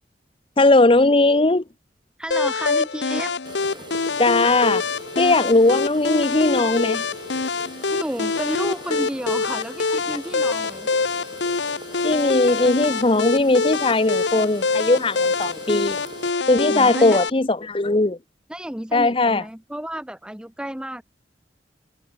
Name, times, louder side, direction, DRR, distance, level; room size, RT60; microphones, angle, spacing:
voice 1, 0.6-1.6 4.2-4.8 5.2-7.1 12.0-16.0 16.5-18.2 18.9-19.4, left 2 dB, 30° left, 0.8 m, -18 dB
voice 2, 2.2-3.3 7.9-10.9 16.7-17.2 18.5-21.0, equal, 5° right, 0.7 m, -31 dB
sound 1, 2.3-17.3, left 4 dB, 90° left, 1.0 m, -25 dB
sound 2, 3.5-16.3, right 2 dB, 25° right, 4.1 m, -42 dB
head